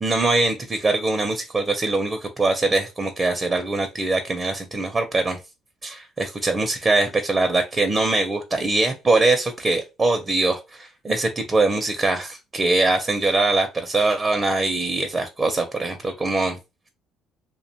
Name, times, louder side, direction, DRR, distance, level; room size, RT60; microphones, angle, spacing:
voice 1, 0.0-5.4 5.8-16.6, right 2 dB, 30° right, 0.5 m, -22 dB
2.4 x 2.2 x 2.8 m
supercardioid pair, 70°, 0 cm